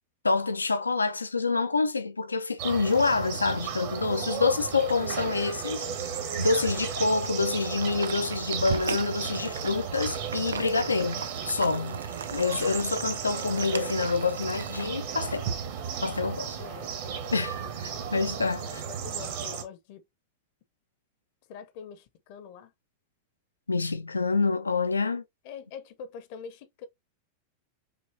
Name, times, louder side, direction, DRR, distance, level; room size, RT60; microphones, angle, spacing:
voice 1, 0.2-5.8 6.4-12.0 12.3-15.5 16.0-16.6 17.3-18.7 23.7-25.2, left 4 dB, 80° left, 0.4 m, -27 dB
sound 1, 2.6-19.6, right 7 dB, 55° right, 1.2 m, -34 dB
sound 2, 2.9-14.9, right 5 dB, 70° right, 0.4 m, -41 dB
voice 2, 16.6-16.9 18.6-20.0 21.5-22.7 25.4-26.9, left 6 dB, 50° left, 0.7 m, -44 dB
5.7 x 3.0 x 2.6 m
figure-of-eight pair, 90°, 0 cm